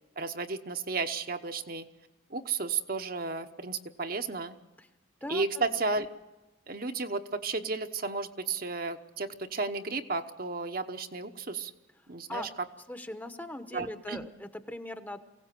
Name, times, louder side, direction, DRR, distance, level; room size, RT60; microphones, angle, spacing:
voice 1, 0.2-1.8 2.3-4.5 5.3-6.1 6.7-11.7 12.1-12.5 13.7-14.3, right 4 dB, 50° right, 7 dB, 1.0 m, -33 dB
voice 2, 12.9-15.2, left 1 dB, 10° left, 9 dB, 0.9 m, -39 dB
23.5 x 17.0 x 7.6 m, 1.1 s
head